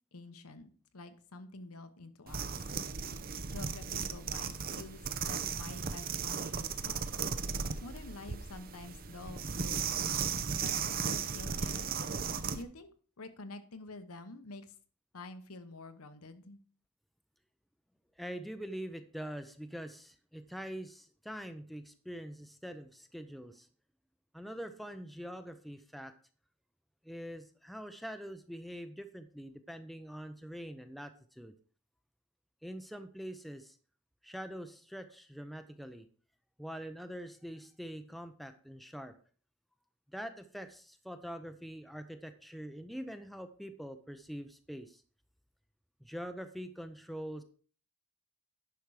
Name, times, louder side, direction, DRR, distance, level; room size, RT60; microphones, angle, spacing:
voice 1, 0.1-2.7 3.5-7.0 7.8-11.9 12.5-14.7 15.1-16.6, left 2 dB, 75° left, 10 dB, 1.0 m, -48 dB
sound 1, 2.3-12.6, right 6 dB, 40° right, 0.7 m, -36 dB
voice 2, 18.2-23.7 24.3-26.1 27.0-31.5 32.6-33.8 34.2-36.1 36.6-39.1 40.1-45.0 46.0-47.4, equal, ahead, 8 dB, 0.5 m, -44 dB
10.5 x 6.0 x 4.8 m, 0.42 s
head